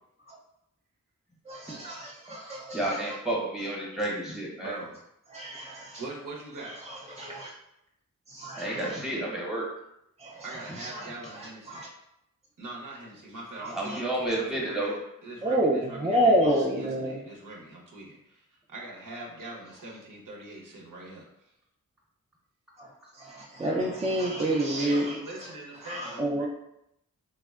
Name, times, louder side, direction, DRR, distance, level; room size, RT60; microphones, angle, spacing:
voice 1, 1.5-3.2 5.3-6.0 6.6-7.5 8.3-9.0 10.2-11.9 13.8-14.0 15.4-17.2 22.8-25.5 25.8-26.5, right 1 dB, 20° right, -4 dB, 0.4 m, -29 dB
voice 2, 2.7-4.8 8.6-9.7 13.7-14.9, right 1 dB, ahead, -3 dB, 0.9 m, -31 dB
voice 3, 4.6-5.0 6.0-6.7 10.4-11.8 12.6-21.5 24.8-26.5, right 2 dB, 70° right, -2 dB, 0.8 m, -42 dB
3.5 x 2.1 x 2.3 m, 0.80 s
wide cardioid pair, 65°, 33 cm